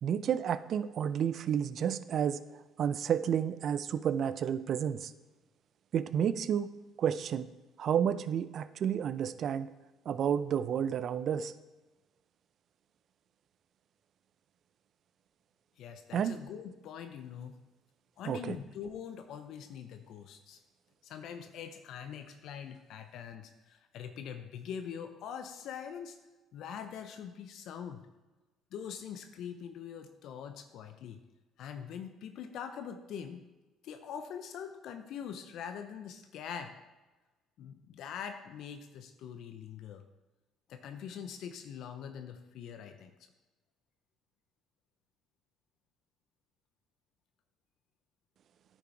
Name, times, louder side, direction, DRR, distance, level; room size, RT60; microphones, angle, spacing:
voice 1, 0.0-2.4 2.8-5.1 5.9-6.7 7.0-7.5 7.8-9.7 10.1-11.5 16.1-16.4 18.3-18.6, right 8 dB, 60° right, 14 dB, 0.5 m, -31 dB
voice 2, 15.8-17.5 18.2-20.6 21.0-26.2 26.5-28.0 28.7-31.2 31.6-33.4 33.8-36.7 37.6-40.0 40.7-43.1, left 8 dB, 70° left, 8 dB, 0.6 m, -43 dB
10.0 x 6.1 x 4.6 m, 1.2 s
supercardioid pair, 70°, 0 cm